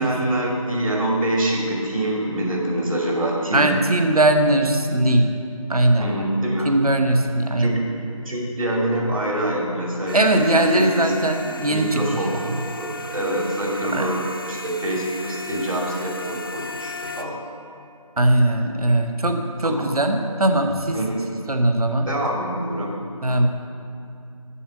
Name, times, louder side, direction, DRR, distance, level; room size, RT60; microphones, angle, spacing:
voice 1, 0.0-3.8 6.0-6.7 7.6-8.0 8.2-10.9 11.7-14.2 14.5-17.4 19.6-19.9 20.9-21.2 22.0-23.0, right 1 dB, 65° right, -2 dB, 2.4 m, -25 dB
voice 2, 3.5-5.4 5.7-6.1 6.6-7.8 10.1-12.0 13.9-14.1 18.2-21.0 21.5-22.1 23.2-23.5, right 1 dB, 90° right, 5 dB, 1.0 m, -19 dB
sound 1, 10.1-17.2, left 2 dB, 40° left, 0.5 m, -35 dB
7.1 x 6.1 x 7.3 m, 2.6 s
figure-of-eight pair, 170°, 18 cm